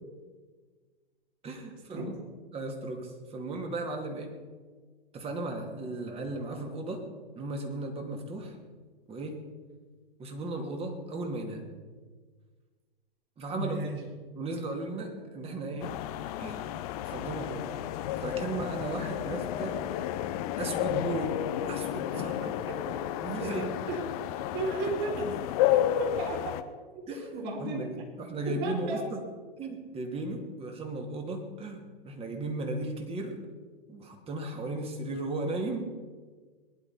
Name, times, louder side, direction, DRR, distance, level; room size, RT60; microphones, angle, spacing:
voice 1, 1.4-2.1 2.5-4.3 5.1-7.0 7.4-8.6 9.1-9.4 10.2-11.6 13.4-13.8 14.3-15.9 16.4-16.7 17.0-17.7 18.2-20.0 20.6-21.4 21.6-22.5 23.2-23.7 27.1-29.2 29.6-33.4 33.9-35.9, right 2 dB, 20° right, 3 dB, 2.6 m, -36 dB
voice 2, 13.5-14.0 22.1-22.4 22.7-22.9 23.4-24.0 24.5-26.5 26.9-27.0 27.3-28.0 28.4-29.1, right 2 dB, 35° right, 0 dB, 4.6 m, -35 dB
sound 1, 15.8-26.6, left 12 dB, 40° left, 0.9 m, -32 dB
21.0 x 11.5 x 4.4 m, 1.4 s
figure-of-eight pair, 105°, 29 cm